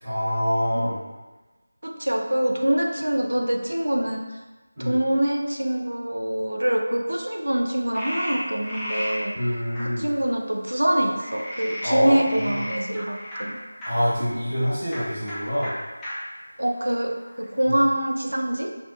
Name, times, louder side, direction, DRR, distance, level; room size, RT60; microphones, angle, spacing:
voice 1, 0.0-1.0 4.8-4.9 9.3-10.1 11.8-12.5 13.8-15.8 17.6-17.8, equal, 25° right, -17 dB, 1.2 m, -25 dB
voice 2, 1.8-4.3 4.8-9.4 9.8-13.6 16.6-18.8, right 1 dB, 85° right, 3 dB, 0.3 m, -25 dB
Frog, 7.9-9.2 9.8-9.9 11.2-13.9 14.8-15.0 15.3-15.4 15.6-15.7 16.0-16.1 16.7-17.5, equal, 5° left, 0.3 m, -33 dB
2.5 x 2.1 x 2.4 m, 1.2 s
figure-of-eight pair, 170°, 0 cm